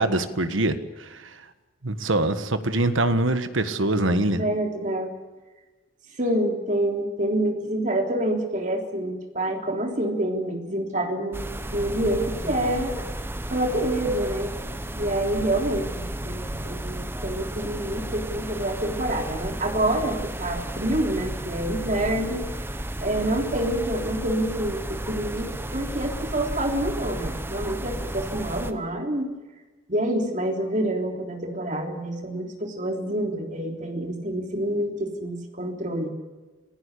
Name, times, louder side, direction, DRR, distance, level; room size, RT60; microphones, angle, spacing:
voice 1, 0.0-1.4 1.8-4.4, right 2 dB, 85° right, 10 dB, 1.5 m, -24 dB
voice 2, 4.4-5.1 6.2-12.9 13.5-14.5 14.9-22.5 23.0-29.3 29.9-36.1, right 1 dB, 40° right, 2 dB, 3.5 m, -27 dB
sound 1, 11.3-28.7, right 1 dB, 10° right, 1.1 m, -33 dB
26.0 x 16.0 x 8.4 m, 1.2 s
head